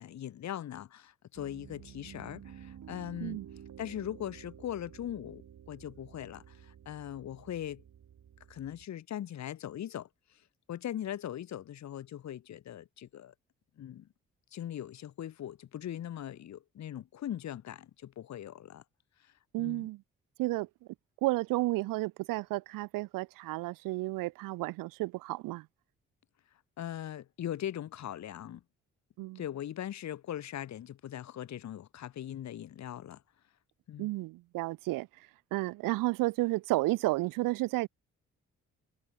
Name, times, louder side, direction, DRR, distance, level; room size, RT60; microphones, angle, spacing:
voice 1, 0.0-3.4 3.8-6.4 6.9-7.8 8.5-10.1 10.7-13.3 13.8-14.1 14.5-18.8 19.6-19.9 26.8-28.6 29.4-33.2 33.9-34.1, left 11 dB, 55° left, 0.9 m, -40 dB
Piano, 1.3-8.8, right 9 dB, 70° right, 5.8 m, -51 dB
voice 2, 19.5-20.0 20.4-20.7 21.2-25.6 29.2-29.4 34.0-35.1 35.5-37.9, right 20 dB, 85° right, 0.7 m, -32 dB
supercardioid pair, 50°, 32 cm